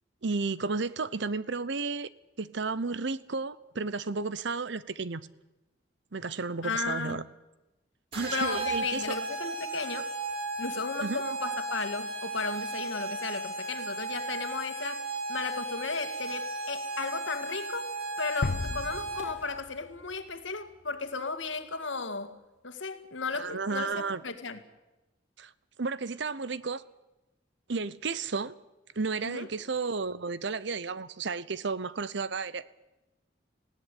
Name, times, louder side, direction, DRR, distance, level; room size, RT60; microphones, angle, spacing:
voice 1, 0.2-2.1 2.4-5.3 6.1-7.2 8.1-9.2 11.0-11.2 23.3-24.2 25.4-25.5 25.8-26.8 27.7-28.5 29.0-32.6, right 4 dB, 65° right, 0.8 m, -32 dB
voice 2, 6.6-7.2 8.3-10.1 10.6-15.0 15.3-22.4 22.6-24.6 29.2-29.5, left 4 dB, 85° left, 2.0 m, -35 dB
sound 1, 8.1-19.5, right 2 dB, 30° right, 6.1 m, -35 dB
sound 2, 18.4-20.3, left 2 dB, 60° left, 0.8 m, -35 dB
19.5 x 16.5 x 10.0 m
head